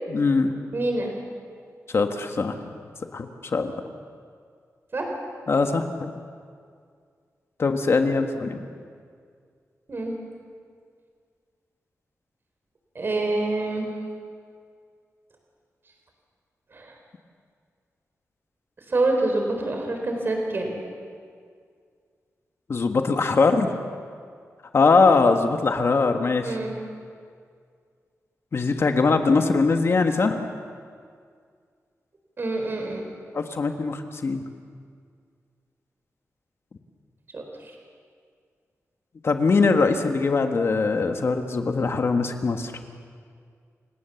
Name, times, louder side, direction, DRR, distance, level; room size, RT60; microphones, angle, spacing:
voice 1, 0.1-0.5 1.9-2.7 3.1-3.7 5.5-6.1 7.6-8.7 22.7-23.8 24.7-26.6 28.5-30.5 33.3-34.4 39.2-42.9, left 4 dB, 50° left, 5 dB, 1.5 m, -22 dB
voice 2, 0.7-1.1 4.9-5.1 9.9-10.2 12.9-13.9 16.7-16.9 18.9-20.7 26.4-26.7 32.4-33.0 37.3-37.7, right 2 dB, 40° right, 2 dB, 4.1 m, -26 dB
29.0 x 18.0 x 7.1 m, 2.1 s
wide cardioid pair, 140°, 6 cm